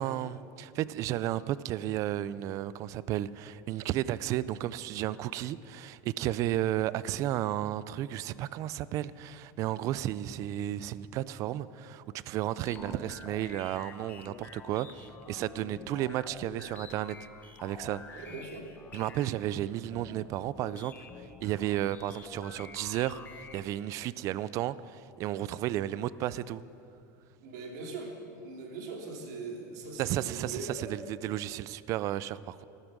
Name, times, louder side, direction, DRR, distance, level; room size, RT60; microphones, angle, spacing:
voice 1, 0.0-17.2 17.6-18.2 18.9-26.6 30.0-32.6, right 13 dB, 35° right, 0.3 m, -33 dB
sound 1, 12.6-23.8, left 5 dB, 15° left, 0.8 m, -49 dB
voice 2, 12.7-13.0 18.1-18.7 27.4-30.9, right 3 dB, 75° right, 2.6 m, -41 dB
15.0 x 13.5 x 6.1 m
supercardioid pair, 160°, 9 cm